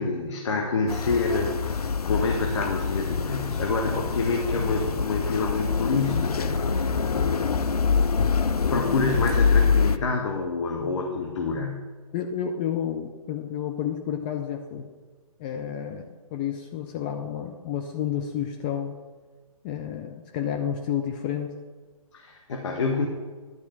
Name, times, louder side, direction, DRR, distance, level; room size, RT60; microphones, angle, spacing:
voice 1, 0.0-8.0 8.3-11.9 22.1-23.1, left 4 dB, 50° left, 2 dB, 1.2 m, -28 dB
sound 1, 0.9-10.0, left 5 dB, 85° left, 0.5 m, -25 dB
voice 2, 12.1-14.9 15.4-16.0 16.3-19.0 19.6-21.6, left 9 dB, 15° left, 2 dB, 0.3 m, -30 dB
11.0 x 4.3 x 7.4 m, 1.4 s
figure-of-eight pair, 135°, 19 cm